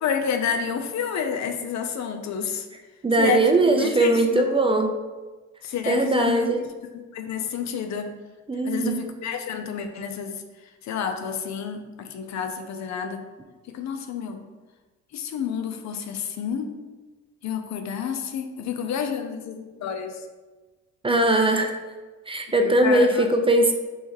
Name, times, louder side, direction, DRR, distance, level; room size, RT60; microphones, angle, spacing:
voice 1, 0.0-2.7 3.2-4.4 5.6-6.5 7.1-8.1 8.7-10.4 10.8-13.2 13.7-14.4 15.1-16.8 17.4-20.2 22.6-23.3, left 7 dB, 65° left, 6 dB, 0.6 m, -29 dB
voice 2, 3.0-5.0 5.9-6.6 8.5-9.1 21.0-21.7 22.3-23.7, right 2 dB, 20° right, 4 dB, 0.4 m, -20 dB
3.2 x 3.2 x 4.7 m, 1.2 s
cardioid pair, 90°, 30 cm